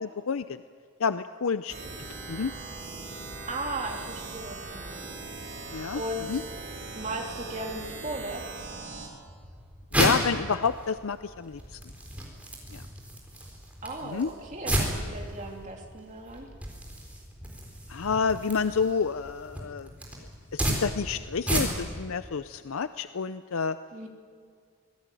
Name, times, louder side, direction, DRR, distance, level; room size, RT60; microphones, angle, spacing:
voice 1, 0.0-0.6 1.0-1.9 2.3-2.5 5.7-6.0 6.3-6.4 9.9-11.9 12.7-12.8 14.0-14.3 17.9-19.9 20.5-23.8, left 5 dB, 70° left, 12 dB, 0.5 m, -29 dB
sound 1, 1.7-9.1, right 3 dB, 55° right, 4.6 m, -40 dB
voice 2, 3.5-5.1 5.9-6.4 6.9-8.5 13.8-16.5 23.9-24.1, right 1 dB, 35° right, 1 dB, 3.1 m, -36 dB
sound 2, 9.3-22.0, right 1 dB, 5° right, 3.9 m, -33 dB
24.5 x 18.0 x 9.2 m, 2.1 s
head